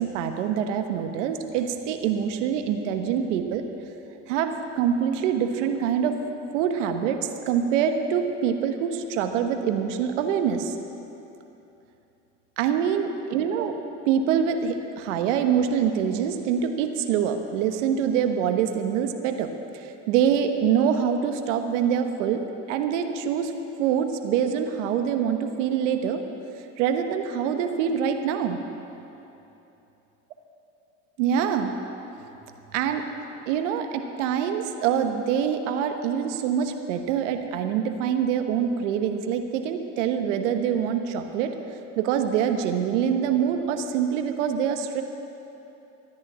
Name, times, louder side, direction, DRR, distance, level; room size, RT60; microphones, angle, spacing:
voice 1, 0.0-3.6 4.3-6.2 6.5-7.2 7.5-10.7 12.6-13.8 14.0-23.5 23.8-26.2 26.8-28.6 31.2-31.7 32.7-33.1 33.5-41.5 42.0-45.0, right 8 dB, 85° right, 6 dB, 1.3 m, -25 dB
13.0 x 10.5 x 8.6 m, 3.0 s
supercardioid pair, 85°, 36 cm